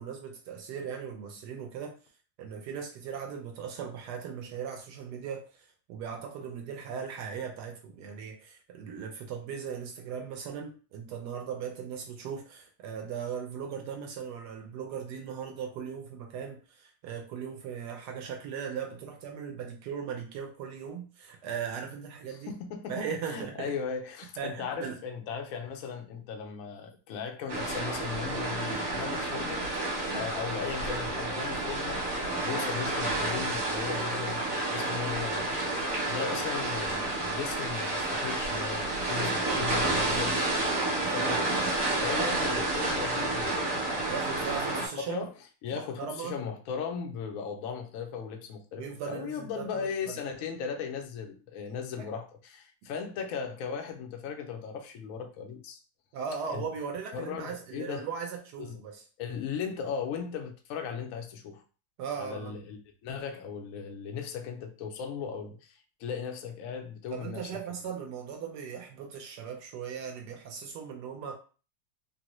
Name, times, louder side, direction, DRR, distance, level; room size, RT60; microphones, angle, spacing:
voice 1, 0.0-2.0 2.4-22.5 22.9-23.8 24.4-25.0 30.1-30.3 42.1-42.5 44.1-45.3 45.7-46.4 48.8-50.2 52.0-52.1 56.1-59.0 62.0-62.6 67.1-71.3, right 7 dB, 75° right, 1.1 m, -38 dB
voice 2, 22.3-41.7 42.0-44.4 44.9-45.3 45.6-55.8 56.5-56.6 57.1-58.1 58.6-58.8 59.2-61.6 62.2-67.5, left 6 dB, 80° left, 0.7 m, -37 dB
sound 1, 27.5-44.9, right 2 dB, 55° right, 1.3 m, -30 dB
3.7 x 2.0 x 2.9 m
omnidirectional pair, 2.0 m